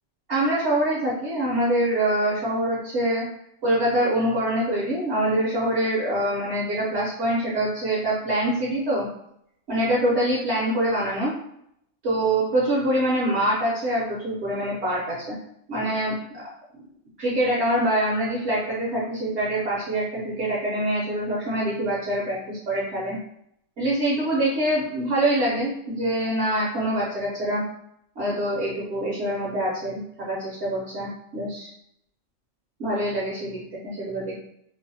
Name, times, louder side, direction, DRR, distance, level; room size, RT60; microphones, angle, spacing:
voice 1, 0.3-3.2 3.6-9.1 9.7-11.3 12.0-15.4 15.7-16.4 17.2-23.2 23.8-27.6 28.2-31.7 32.8-34.4, right 1 dB, 65° right, -5 dB, 0.8 m, -25 dB
2.6 x 2.0 x 2.6 m, 0.76 s
omnidirectional pair, 1.4 m